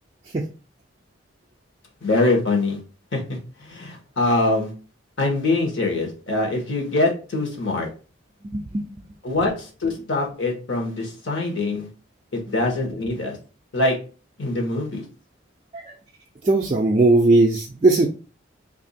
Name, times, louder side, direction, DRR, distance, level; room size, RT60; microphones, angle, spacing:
voice 1, 2.0-2.8 3.1-4.7 5.2-7.9 9.2-11.9 12.3-13.4 13.7-14.0 14.4-15.0, left 2 dB, 65° left, 0 dB, 1.0 m, -23 dB
voice 2, 8.5-8.9 15.7-15.9 16.4-18.1, right 2 dB, 30° right, -1 dB, 0.3 m, -18 dB
2.8 x 2.5 x 4.1 m, 0.36 s
head